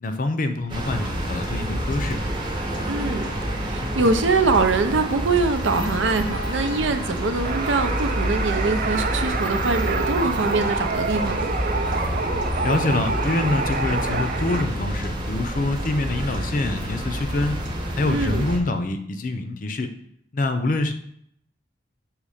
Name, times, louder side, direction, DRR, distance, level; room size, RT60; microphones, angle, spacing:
voice 1, 0.0-2.2 12.6-17.6 17.9-19.9 20.3-20.9, left 2 dB, 45° left, 7 dB, 0.5 m, -25 dB
sound 1, 0.7-18.6, equal, 25° right, 0.9 m, -28 dB
voice 2, 2.9-3.3 3.6-11.6 18.1-18.4, right 3 dB, 85° right, 8 dB, 0.6 m, -23 dB
sound 2, 7.4-14.6, right 3 dB, 45° right, 0.5 m, -27 dB
6.5 x 3.1 x 4.9 m, 0.69 s
head